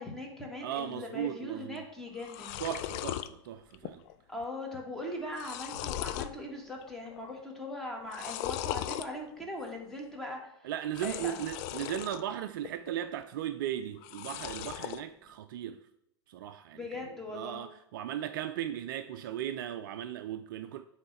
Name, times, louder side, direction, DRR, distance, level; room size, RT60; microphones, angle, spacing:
voice 1, 0.0-2.6 4.3-10.7 11.0-11.4 16.7-17.6, left 1 dB, 5° left, 1.5 m, -40 dB
voice 2, 0.6-1.8 2.6-4.0 10.6-15.8 16.3-16.8 17.3-20.8, right 11 dB, 50° right, 0.4 m, -37 dB
sound 1, 1.8-1.9 2.1-3.3 3.7-4.2 4.4-4.5 5.1-6.4 6.8-7.3 8.0-9.1 10.8-12.2 12.6-13.2 14.0-15.0, left 13 dB, 40° left, 0.4 m, -38 dB
7.7 x 3.2 x 5.7 m
figure-of-eight pair, 95°, 14 cm